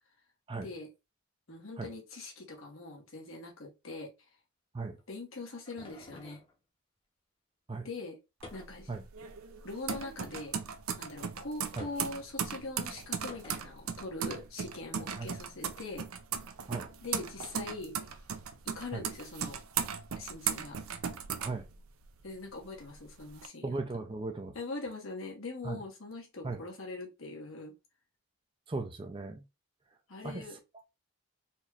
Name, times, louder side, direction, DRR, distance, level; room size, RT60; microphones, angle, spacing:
voice 1, 0.6-0.9 1.5-4.1 5.1-6.4 7.8-8.2 8.5-8.9 9.6-10.6 11.0-16.1 17.0-18.2 18.6-19.6 20.2-20.8 22.2-24.0 24.5-27.7 30.1-30.6, left 3 dB, 70° left, 1.3 m, -42 dB
sound 1, 5.0-6.5 8.4-8.9 9.9-10.4 11.8-12.2 13.3-13.7, left 2 dB, 25° left, 0.9 m, -50 dB
sound 2, 8.4-22.2 22.6-23.5, right 7 dB, 80° right, 0.5 m, -37 dB
voice 2, 23.6-24.5 25.6-25.8 26.4-26.6 28.7-29.4 30.2-30.4, right 3 dB, 25° right, 0.4 m, -37 dB
4.1 x 3.0 x 2.4 m
head